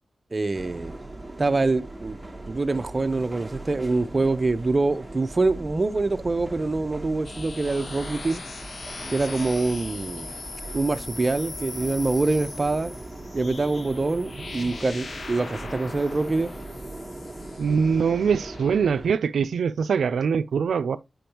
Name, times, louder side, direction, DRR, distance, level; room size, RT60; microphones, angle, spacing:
voice 1, 0.3-0.9 1.4-2.2 2.5-8.4 9.1-10.3 10.7-12.9 13.3-16.5, right 3 dB, 35° right, 0.7 m, -25 dB
sound 1, 0.5-19.1, right 2 dB, 10° right, 1.4 m, -39 dB
sound 2, 7.2-18.9, left 4 dB, 60° left, 0.7 m, -40 dB
voice 2, 14.2-14.7 17.6-21.0, right 6 dB, 90° right, 0.4 m, -23 dB
7.8 x 5.1 x 2.9 m
wide cardioid pair, 80°, 0 cm